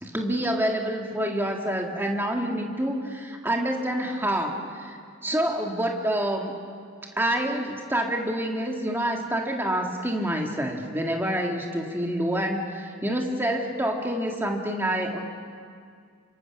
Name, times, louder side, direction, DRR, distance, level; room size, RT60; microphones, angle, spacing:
voice 1, 0.0-5.0 5.2-6.5 7.2-15.2, right 1 dB, 10° right, 1 dB, 2.0 m, -27 dB
27.5 x 25.0 x 6.0 m, 2.2 s
head